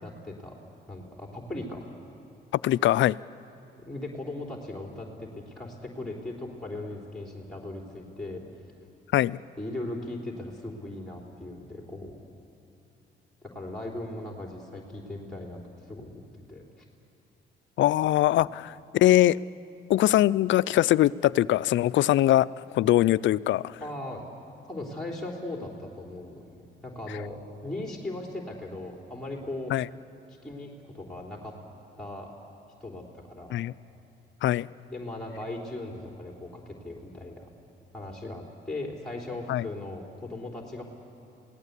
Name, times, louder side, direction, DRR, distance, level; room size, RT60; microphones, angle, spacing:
voice 1, 0.0-0.6 0.9-1.8 3.9-8.4 9.6-12.2 13.4-16.2 16.5-16.9 23.8-24.2 24.7-26.4 26.8-29.7 30.3-31.5 32.0-32.3 32.8-33.5 34.9-37.5 37.9-40.8, left 2 dB, ahead, 0 dB, 3.7 m, -38 dB
voice 2, 2.6-3.2 9.1-9.4 17.8-18.5 18.9-19.4 19.9-22.5 22.7-23.8 29.7-29.9 33.5-33.7 34.4-34.7 39.5-39.6, left 14 dB, 70° left, 18 dB, 0.5 m, -22 dB
27.5 x 18.0 x 8.3 m, 3.0 s
cardioid pair, 90°, 20 cm